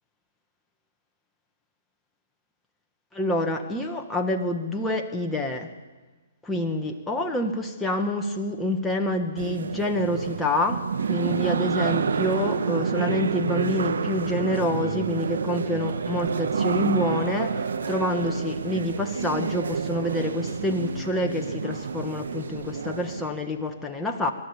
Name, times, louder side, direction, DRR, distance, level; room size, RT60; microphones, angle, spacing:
voice 1, 3.1-5.7 6.4-24.3, left 1 dB, 5° left, 2 dB, 1.5 m, -27 dB
sound 1, 9.4-23.3, right 5 dB, 70° right, 1.5 m, -29 dB
26.0 x 12.5 x 8.4 m, 1.3 s
figure-of-eight pair, 130°, 0 cm